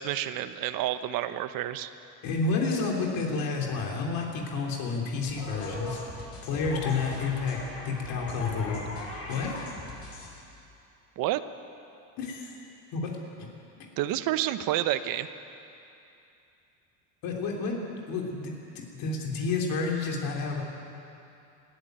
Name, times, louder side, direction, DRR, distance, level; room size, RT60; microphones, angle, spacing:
voice 1, 0.0-1.9 11.2-11.4 14.0-15.3, right 13 dB, 60° right, 12 dB, 1.0 m, -29 dB
voice 2, 2.2-7.6 7.9-8.9 9.3-9.6 12.2-12.5 12.9-13.1 13.4-13.5 13.8-13.9 17.2-18.5 19.0-20.6, left 4 dB, 60° left, 0 dB, 3.5 m, -30 dB
sound 1, 5.3-10.3, left 3 dB, 35° left, 6.2 m, -39 dB
20.0 x 14.0 x 9.3 m, 2.7 s
cardioid pair, 125°, 39 cm